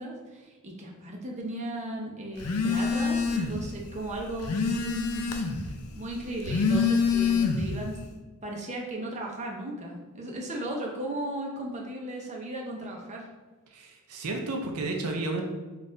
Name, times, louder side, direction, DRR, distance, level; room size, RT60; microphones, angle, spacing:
voice 1, 0.0-8.0 8.4-13.3, right 1 dB, 30° right, -1 dB, 0.6 m, -36 dB
Telephone, 2.4-3.7 4.0-5.7 6.3-7.8, left 5 dB, 80° left, 0.5 m, -26 dB
voice 2, 13.7-15.4, right 2 dB, 80° right, 2 dB, 0.5 m, -32 dB
4.0 x 2.4 x 3.8 m, 1.3 s
head